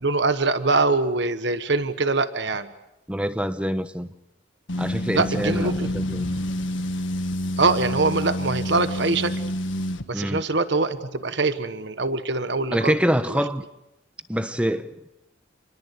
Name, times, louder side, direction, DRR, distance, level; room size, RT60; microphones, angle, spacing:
voice 1, 0.0-2.7 5.1-5.9 7.6-9.3 10.1-12.9 13.3-13.4, right 3 dB, 60° right, 1.3 m, -23 dB
voice 2, 3.1-4.1 4.8-6.3 10.1-10.5 12.7-13.6 14.3-14.9, equal, 5° right, 1.0 m, -25 dB
sound 1, 4.7-10.0, left 1 dB, 75° left, 1.7 m, -28 dB
29.0 x 21.0 x 8.3 m
head